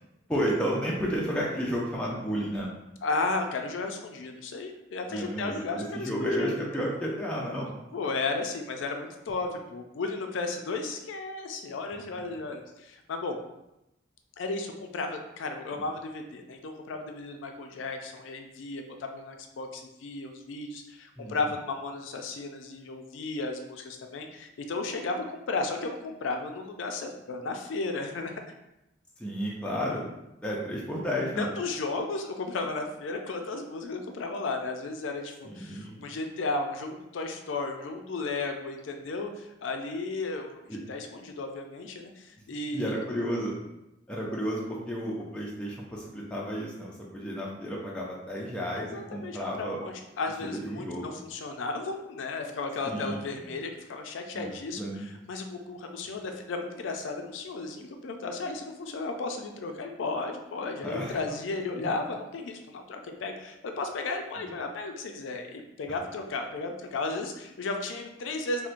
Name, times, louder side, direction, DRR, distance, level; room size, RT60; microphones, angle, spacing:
voice 1, 0.3-2.7 5.1-7.7 12.1-12.2 15.7-15.8 21.2-21.4 29.2-30.1 30.4-31.5 35.5-36.0 40.7-40.8 42.7-43.5 44.1-49.8 50.5-51.2 52.9-53.6 54.3-55.2 60.8-61.2 61.5-61.6 64.4-64.5, equal, 5° left, -4 dB, 0.3 m, -32 dB
voice 2, 3.0-6.8 7.9-13.4 14.4-28.4 31.4-40.6 40.9-42.9 48.8-68.7, left 3 dB, 90° left, 4 dB, 0.4 m, -34 dB
4.2 x 2.1 x 2.5 m, 0.90 s
head